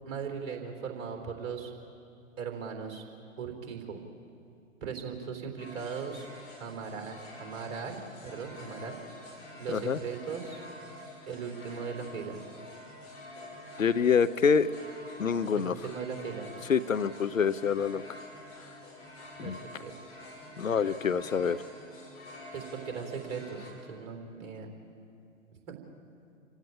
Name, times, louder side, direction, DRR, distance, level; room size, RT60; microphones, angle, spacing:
voice 1, 0.0-1.7 2.4-3.0 3.4-4.0 4.8-6.3 6.6-9.0 9.6-10.6 11.3-12.4 15.6-16.5 19.4-19.9 22.5-24.7 25.7-25.8, right 6 dB, 35° right, 4 dB, 3.7 m, -38 dB
sound 1, 5.6-23.7, left 1 dB, 40° left, 7.0 m, -47 dB
voice 2, 9.7-10.0 13.8-14.7 15.2-15.7 16.7-18.0 19.4-19.6 20.6-21.6, left 6 dB, 75° left, 14 dB, 0.8 m, -26 dB
28.0 x 16.5 x 9.0 m, 2.5 s
figure-of-eight pair, 115°, 40 cm